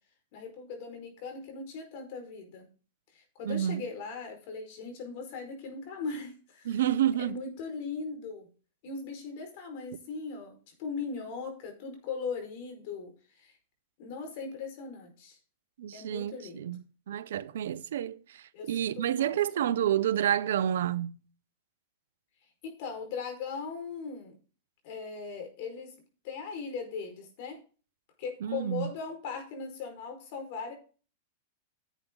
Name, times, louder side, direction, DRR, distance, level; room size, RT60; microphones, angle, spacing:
voice 1, 0.3-2.7 3.1-6.7 7.2-8.5 8.8-13.6 14.0-15.4 15.9-16.6 18.5-18.9 19.2-19.4 22.6-24.3 24.8-25.9 26.2-27.6 28.2-30.7, left 5 dB, 55° left, 4.9 m, -39 dB
voice 2, 3.4-3.8 6.7-7.4 15.8-21.2 28.4-28.9, right 10 dB, 75° right, 0.7 m, -29 dB
11.5 x 8.3 x 3.8 m
hypercardioid pair, 120°, 0 cm